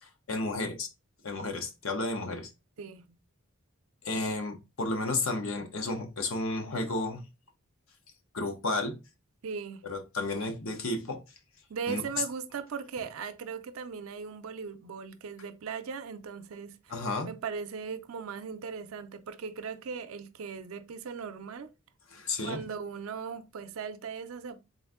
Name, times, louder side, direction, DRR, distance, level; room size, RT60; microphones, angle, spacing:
voice 1, 0.3-0.9 1.2-2.5 4.0-7.2 8.3-9.0 9.8-11.2 11.9-12.0 16.9-17.3 22.1-22.6, left 2 dB, 75° left, 0.8 m, -32 dB
voice 2, 2.8-3.2 9.4-9.9 11.7-16.9 17.2-21.7 22.4-24.6, right 6 dB, 85° right, 0.5 m, -38 dB
3.8 x 2.6 x 3.6 m
head